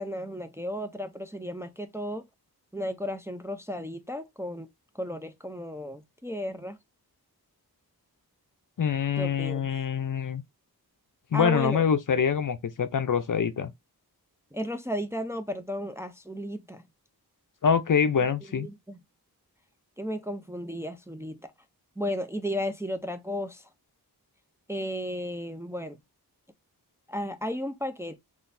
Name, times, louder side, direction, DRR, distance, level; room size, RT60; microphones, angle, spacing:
voice 1, 0.0-2.2 2.7-4.7 5.0-6.8 9.2-9.7 11.3-11.8 14.5-16.8 18.5-19.0 20.0-21.5 22.0-23.6 24.7-26.0 27.1-28.2, equal, 5° right, 0.5 m, -34 dB
voice 2, 8.8-10.4 11.3-13.7 17.6-18.7, left 7 dB, 55° left, 0.5 m, -25 dB
3.9 x 2.6 x 2.6 m
wide cardioid pair, 50°, 39 cm